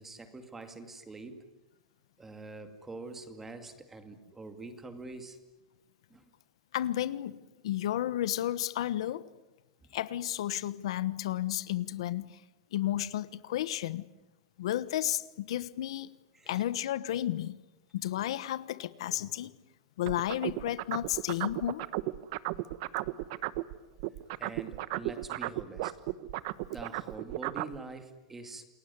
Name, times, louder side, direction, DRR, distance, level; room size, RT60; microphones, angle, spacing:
voice 1, 0.0-1.5 2.2-5.4 6.1-6.3 9.8-9.9 16.3-16.6 23.1-23.3 24.4-25.9 26.7-28.7, right 3 dB, 10° right, 2.3 m, -45 dB
voice 2, 6.7-9.3 9.9-12.4 12.7-14.0 14.6-16.2 16.5-17.6 17.9-19.5 20.0-21.9, left 13 dB, 75° left, 1.2 m, -32 dB
sound 1, 20.1-23.7 24.0-27.8, right 18 dB, 50° right, 1.0 m, -34 dB
28.5 x 21.0 x 9.7 m
supercardioid pair, 170°, 3 cm